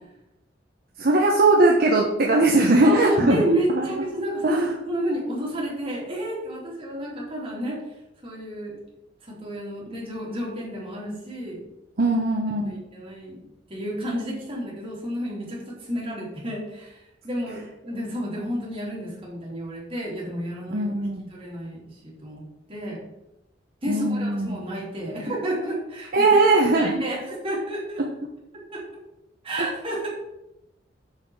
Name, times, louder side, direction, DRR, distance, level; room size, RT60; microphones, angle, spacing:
voice 1, 1.0-3.4 3.7-3.9 4.4-4.7 12.0-12.7 20.7-21.3 23.9-24.6 26.1-27.0 29.6-29.7, right 2 dB, 55° right, -1 dB, 0.9 m, -20 dB
voice 2, 2.8-7.8 8.2-8.8 9.2-11.7 12.6-20.9 21.3-22.4 22.7-23.0 23.8-26.3 26.6-28.0 28.7-28.8 29.4-30.1, right 1 dB, 30° right, -5 dB, 3.1 m, -30 dB
6.6 x 5.7 x 4.8 m, 0.89 s
head